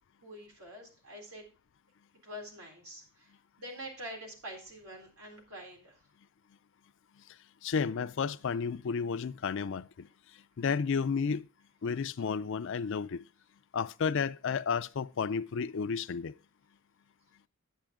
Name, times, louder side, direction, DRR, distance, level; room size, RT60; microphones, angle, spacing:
voice 1, 0.2-1.5 2.2-3.3 3.6-6.0, equal, 90° right, 3.8 m, -46 dB
voice 2, 7.6-10.1 10.6-11.5 11.8-13.2 13.7-16.3, left 6 dB, 60° left, 0.4 m, -32 dB
10.0 x 8.6 x 3.6 m
head